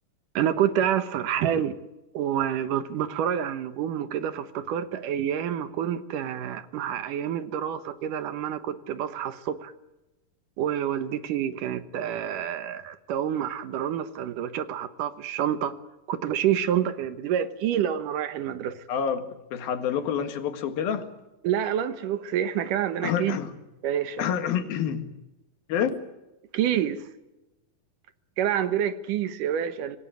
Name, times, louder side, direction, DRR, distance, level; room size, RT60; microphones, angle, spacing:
voice 1, 0.4-1.8 2.1-9.7 10.6-15.8 16.1-18.8 21.4-23.4 23.8-24.3 26.5-27.0 28.4-30.0, right 10 dB, 70° right, 12 dB, 2.6 m, -28 dB
voice 2, 18.9-21.1 23.0-23.5 24.2-25.1 25.7-26.0, left 8 dB, 85° left, 8 dB, 3.6 m, -28 dB
25.5 x 18.5 x 9.2 m, 1.0 s
omnidirectional pair, 4.1 m